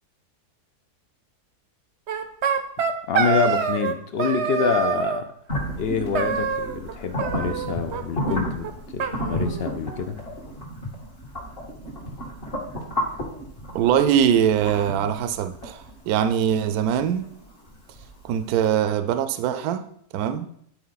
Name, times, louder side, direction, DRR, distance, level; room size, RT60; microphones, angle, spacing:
sound 1, 2.1-3.9 4.2-5.2 6.1-6.9 7.2-8.0 8.3-8.4 8.6-8.7 9.0-10.0, right 7 dB, 55° right, 0.8 m, -26 dB
voice 1, 3.1-5.2 5.8-8.7 8.9-10.2, left 6 dB, 65° left, 7 dB, 0.6 m, -26 dB
sound 2, 5.5-18.4, equal, 40° left, 1.9 m, -32 dB
voice 2, 13.7-17.3 18.2-19.8 20.1-20.5, right 9 dB, 75° right, 10 dB, 1.0 m, -22 dB
10.5 x 4.5 x 4.0 m, 0.67 s
omnidirectional pair, 1.6 m